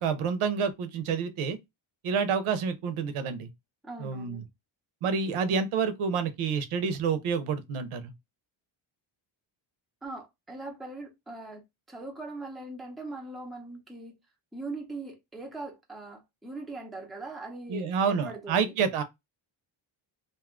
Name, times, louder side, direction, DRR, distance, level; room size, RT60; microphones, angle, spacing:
voice 1, 0.0-1.6 2.0-3.5 4.0-4.4 5.0-8.1 17.7-19.0, right 6 dB, 80° right, 0.8 m, -28 dB
voice 2, 3.8-4.4 10.0-11.6 11.9-14.1 14.5-18.7, right 2 dB, ahead, 0.5 m, -41 dB
2.6 x 2.4 x 3.5 m
wide cardioid pair, 180°, 49 cm